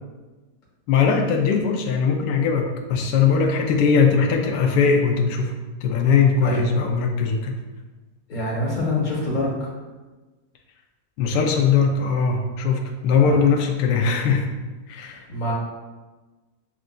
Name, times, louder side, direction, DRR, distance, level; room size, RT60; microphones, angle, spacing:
voice 1, 0.9-5.5 5.8-7.6 11.2-14.5 14.9-15.2, left 5 dB, 85° left, 2 dB, 1.2 m, -20 dB
voice 2, 8.3-9.7 13.1-13.4 15.3-15.5, left 1 dB, 30° left, -5 dB, 1.3 m, -25 dB
7.3 x 2.4 x 2.2 m, 1.2 s
omnidirectional pair, 1.9 m